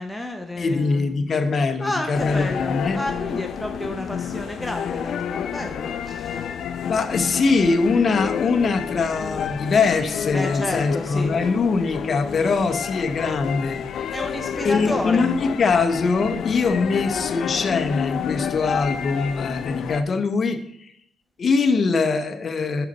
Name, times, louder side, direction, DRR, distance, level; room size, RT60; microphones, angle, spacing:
voice 1, 0.0-1.1 1.8-6.5 10.3-11.4 14.1-15.3, left 1 dB, 5° left, 3 dB, 0.6 m, -31 dB
voice 2, 0.6-3.0 6.8-14.1 14.6-20.9 21.4-22.9, left 4 dB, 45° left, 7 dB, 0.7 m, -22 dB
sound 1, 2.1-20.0, left 8 dB, 65° left, 0.4 m, -29 dB
7.0 x 5.7 x 4.1 m, 0.71 s
cardioid pair, 90°, 0 cm